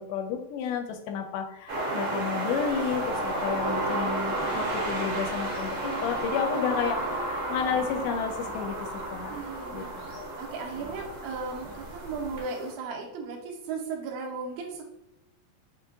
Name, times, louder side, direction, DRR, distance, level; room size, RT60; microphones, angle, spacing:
voice 1, 0.0-8.8 9.1-9.3 9.7-9.8 10.1-10.3, left 7 dB, 80° left, 5 dB, 2.0 m, -31 dB
sound 1, 1.7-12.7, right 1 dB, 60° right, 1.7 m, -32 dB
sound 2, 2.7-12.4, right 1 dB, 45° right, 1.2 m, -49 dB
voice 2, 9.3-14.8, right 4 dB, 80° right, 1 dB, 1.6 m, -36 dB
5.9 x 2.1 x 2.7 m, 0.91 s
omnidirectional pair, 3.9 m